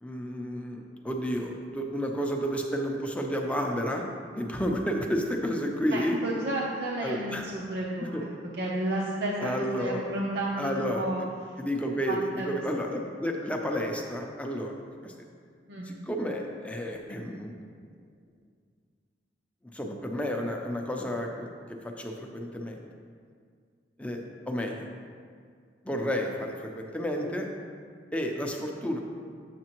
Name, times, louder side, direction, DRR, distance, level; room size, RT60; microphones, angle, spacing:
voice 1, 0.0-4.0 4.4-6.2 7.0-7.5 8.1-8.2 9.4-10.1 10.6-11.3 11.6-14.7 15.0-15.1 15.9-17.6 19.7-21.5 21.8-22.8 24.0-24.9 25.8-27.5 28.1-29.0, equal, 10° left, 1 dB, 0.6 m, -31 dB
voice 2, 5.9-8.2 8.6-11.2 12.1-12.5 15.7-15.9, right 1 dB, 65° right, -4 dB, 0.7 m, -32 dB
7.5 x 6.6 x 3.0 m, 2.1 s
head